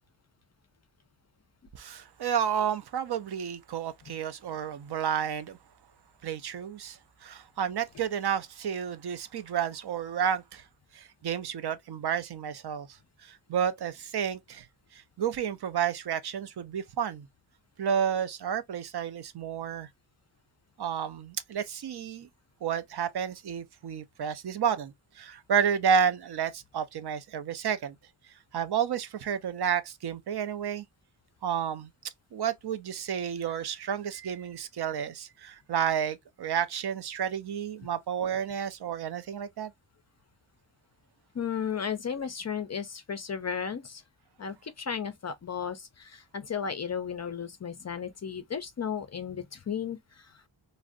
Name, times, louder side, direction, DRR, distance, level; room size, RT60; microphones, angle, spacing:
voice 1, 1.8-5.6 6.2-10.6 10.9-12.9 13.2-14.7 14.9-17.3 17.8-19.9 20.8-22.3 22.6-27.9 28.5-30.8 31.4-31.9 32.3-39.7, right 8 dB, 55° right, 0.5 m, -31 dB
voice 2, 41.3-44.0 44.4-50.5, left 7 dB, 35° left, 0.4 m, -34 dB
2.5 x 2.1 x 3.6 m
wide cardioid pair, 120°, 46 cm